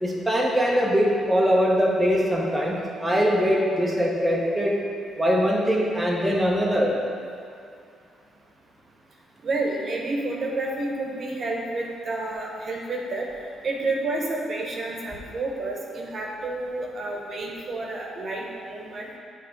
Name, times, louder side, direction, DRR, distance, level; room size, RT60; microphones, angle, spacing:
voice 1, 0.0-4.8 5.2-6.9, equal, 10° right, -4 dB, 1.1 m, -22 dB
voice 2, 9.4-13.3 13.6-19.2, right 2 dB, 50° right, -1 dB, 1.1 m, -30 dB
8.3 x 3.6 x 5.3 m, 2.4 s
cardioid pair, 90°, 0 cm